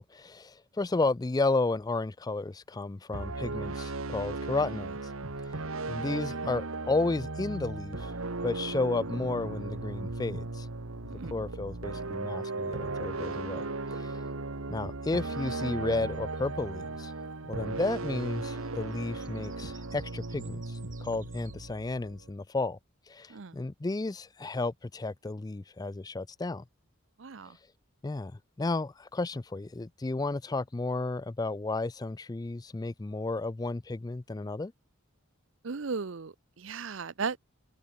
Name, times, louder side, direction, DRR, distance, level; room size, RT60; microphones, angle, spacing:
voice 1, 0.0-4.9 5.9-8.1 8.4-10.7 11.3-13.6 13.9-14.2 14.7-17.1 17.5-22.8 23.1-26.6 28.0-28.3 28.6-34.7, left 3 dB, 20° left, 0.3 m, -32 dB
sound 1, 3.1-22.3, right 3 dB, 80° right, 1.5 m, -36 dB
Bird vocalization bird call bird song, 15.2-21.6, right 8 dB, 40° right, 4.5 m, -60 dB
voice 2, 27.2-27.6 35.6-37.4, right 5 dB, 60° right, 0.7 m, -36 dB
head